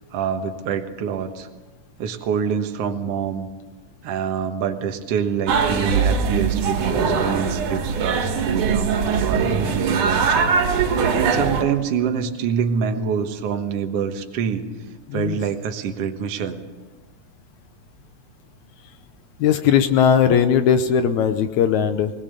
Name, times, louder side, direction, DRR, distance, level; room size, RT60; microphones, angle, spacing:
voice 1, 0.1-1.5 2.0-3.5 4.0-14.7 15.1-16.6, right 7 dB, 60° right, 5 dB, 2.1 m, -26 dB
sound 1, 5.5-11.6, right 5 dB, 90° right, 3.4 m, -21 dB
voice 2, 15.1-15.4 19.4-22.1, left 8 dB, 75° left, 9 dB, 2.2 m, -18 dB
20.5 x 20.0 x 6.8 m, 1.2 s
omnidirectional pair, 3.5 m